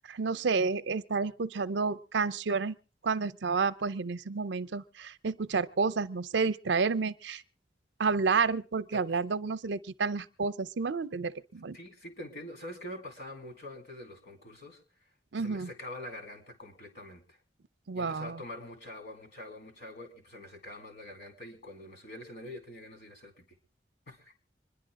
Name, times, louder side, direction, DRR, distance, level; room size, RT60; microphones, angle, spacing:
voice 1, 0.1-2.8 3.0-7.4 8.0-11.8 15.3-15.7 17.9-18.4, right 4 dB, 80° right, 0.6 m, -30 dB
voice 2, 11.7-14.8 15.4-17.4 17.9-23.5 24.1-24.3, left 1 dB, 60° left, 3.6 m, -45 dB
25.5 x 11.0 x 3.7 m
head